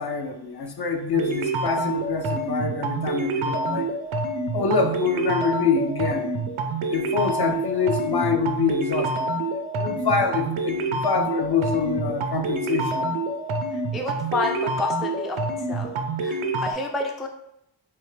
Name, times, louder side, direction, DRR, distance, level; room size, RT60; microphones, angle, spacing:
voice 1, 0.0-3.9 4.5-6.3 6.9-9.3 9.8-13.1, left 5 dB, 55° left, 4 dB, 0.5 m, -25 dB
sound 1, 1.1-16.7, right 2 dB, 80° right, 0.6 m, -27 dB
voice 2, 13.9-15.4 15.7-15.9 16.2-17.3, left 2 dB, ahead, 2 dB, 0.3 m, -29 dB
3.4 x 2.8 x 3.1 m, 0.78 s
wide cardioid pair, 90°, 48 cm